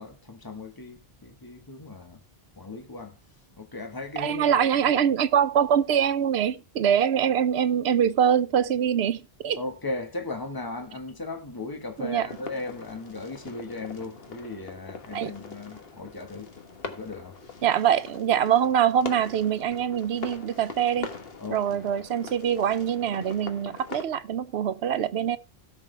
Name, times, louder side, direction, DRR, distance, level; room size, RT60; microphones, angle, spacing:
voice 1, 0.0-2.2 2.6-3.2 3.5-5.0 9.6-16.5 16.8-17.4 21.4-21.9, left 2 dB, 20° left, 1.4 m, -37 dB
voice 2, 4.2-9.6 12.0-12.3 15.1-15.3 17.6-21.1 21.5-25.4, right 9 dB, 80° right, 0.9 m, -24 dB
sound 1, 12.2-24.0, left 4 dB, 65° left, 1.5 m, -42 dB
17.0 x 6.1 x 3.3 m
omnidirectional pair, 1.1 m